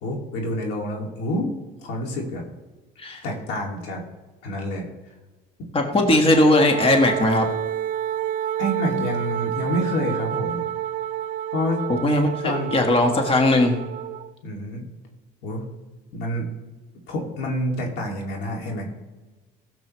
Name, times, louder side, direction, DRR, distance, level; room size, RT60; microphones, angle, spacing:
voice 1, 0.0-1.5 1.8-2.4 3.2-4.0 4.4-4.9 8.6-10.6 11.5-11.8 12.4-12.8 14.4-14.8 15.4-15.7 16.1-16.5 17.1-18.9, equal, 85° left, 0 dB, 2.3 m, -27 dB
voice 2, 5.7-7.5 12.0-12.3 12.7-13.8, left 2 dB, 30° left, 3 dB, 1.5 m, -18 dB
Wind instrument woodwind instrument, 6.3-14.3, right 11 dB, 55° right, 0.4 m, -29 dB
16.0 x 7.6 x 3.1 m, 1.2 s
cardioid pair, 110°, 17 cm